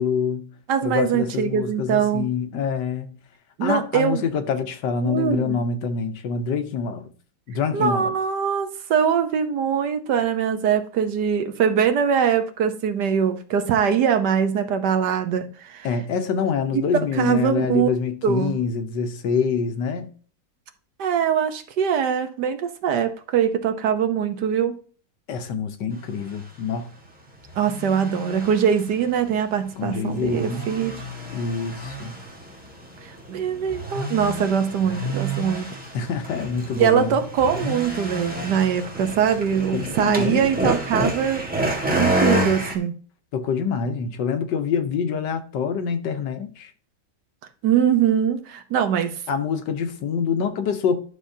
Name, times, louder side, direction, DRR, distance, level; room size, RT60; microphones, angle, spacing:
voice 1, 0.0-0.5 0.8-3.1 3.6-7.1 7.5-8.2 15.8-20.1 25.3-26.9 29.8-30.6 31.3-32.2 35.9-37.2 39.7-40.5 43.3-46.7 49.3-51.0, left 6 dB, 80° left, 1.5 m, -26 dB
voice 2, 0.7-2.2 3.6-4.2 5.0-5.6 7.7-15.9 16.7-16.8 17.2-17.9 18.2-18.6 21.0-24.8 27.6-30.9 33.3-35.7 36.8-41.4 42.0-42.9 47.6-49.1, right 8 dB, 75° right, 1.5 m, -22 dB
sound 1, 26.1-26.3 26.8-26.9 27.5-42.8, right 1 dB, 5° right, 1.6 m, -29 dB
11.5 x 6.4 x 2.7 m
omnidirectional pair, 1.9 m